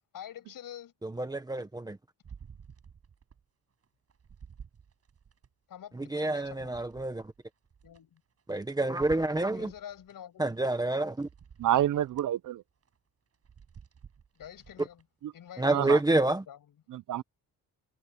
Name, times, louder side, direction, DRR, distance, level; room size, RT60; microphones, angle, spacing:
voice 1, 0.1-0.9 5.7-6.8 7.8-8.2 9.5-11.0 14.3-15.0 15.3-16.6, left 10 dB, 60° left, 7.8 m, -47 dB
voice 2, 1.0-2.0 5.9-7.2 8.5-9.7 10.4-11.3 15.6-16.4, right 2 dB, 10° right, 1.1 m, -28 dB
sound 1, 2.2-3.4 3.8-5.5 6.0-8.6 9.0-10.2 10.7-10.8 11.2-12.3 12.8-13.0 13.3-15.0 15.5-15.6, right 7 dB, 40° right, 6.7 m, -52 dB
voice 3, 11.6-12.6 15.2-15.3 15.7-16.0 16.9-17.2, right 12 dB, 55° right, 0.5 m, -28 dB
cardioid pair, 170°, 38 cm